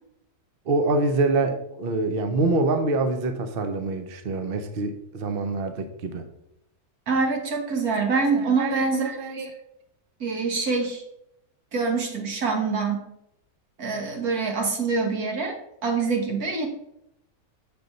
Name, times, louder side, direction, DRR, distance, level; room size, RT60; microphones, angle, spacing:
voice 1, 0.7-6.2 8.3-9.5, right 3 dB, 45° right, 7 dB, 0.8 m, -26 dB
voice 2, 7.1-9.5 10.2-11.0 11.7-13.0 13.8-15.6 15.8-16.7, right 4 dB, 75° right, 2 dB, 1.9 m, -25 dB
6.9 x 4.0 x 6.4 m, 0.79 s
omnidirectional pair, 1.6 m